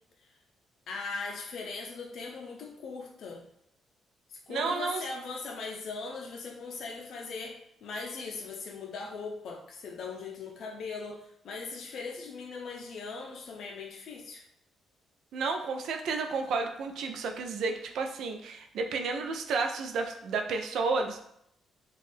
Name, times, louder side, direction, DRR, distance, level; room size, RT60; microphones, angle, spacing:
voice 1, 0.9-3.4 4.3-14.4, left 4 dB, 65° left, 0 dB, 0.5 m, -39 dB
voice 2, 4.5-5.0 15.3-21.2, right 4 dB, 75° right, 4 dB, 0.4 m, -31 dB
2.5 x 2.3 x 3.3 m, 0.73 s
cardioid pair, 90°, 0 cm